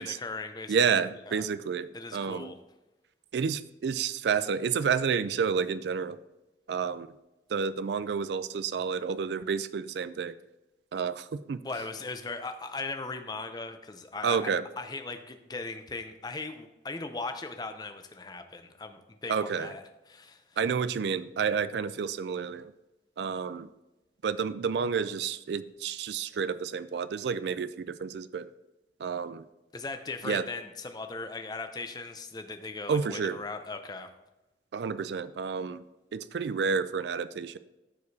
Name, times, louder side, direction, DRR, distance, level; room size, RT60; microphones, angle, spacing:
voice 1, 0.0-1.4 1.9-2.6 11.6-20.4 29.7-34.1, left 3 dB, 25° left, 7 dB, 0.6 m, -38 dB
voice 2, 0.7-2.5 3.3-6.2 6.7-7.1 7.5-10.4 10.9-11.6 14.2-14.6 19.3-19.7 20.6-22.7 23.2-23.7 24.2-28.5 29.0-29.4 30.2-30.5 32.9-33.4 34.7-35.8 36.1-37.6, right 6 dB, 75° right, 15 dB, 0.4 m, -30 dB
14.0 x 4.8 x 2.7 m, 1.0 s
head